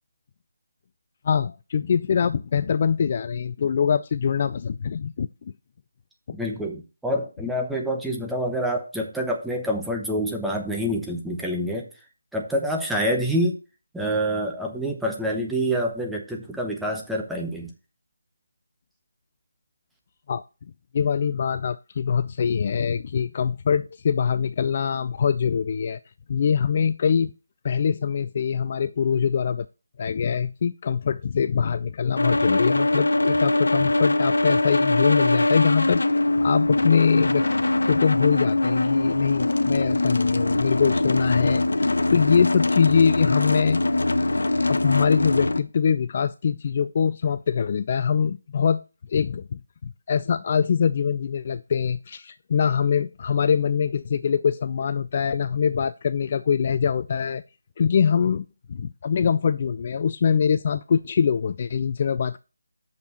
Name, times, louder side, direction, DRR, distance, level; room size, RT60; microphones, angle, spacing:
voice 1, 1.2-5.5 20.3-20.4 20.9-26.0 26.3-27.3 27.6-29.7 30.0-36.0 36.3-37.5 37.9-43.8 44.7-48.8 49.1-57.4 57.8-62.4, left 7 dB, 35° left, 0.3 m, -23 dB
voice 2, 6.3-11.9 12.3-13.6 13.9-17.7, equal, ahead, 1.0 m, -27 dB
sound 1, 32.2-45.6, left 2 dB, 70° left, 0.7 m, -22 dB
6.6 x 5.3 x 6.7 m
figure-of-eight pair, 160°, 0 cm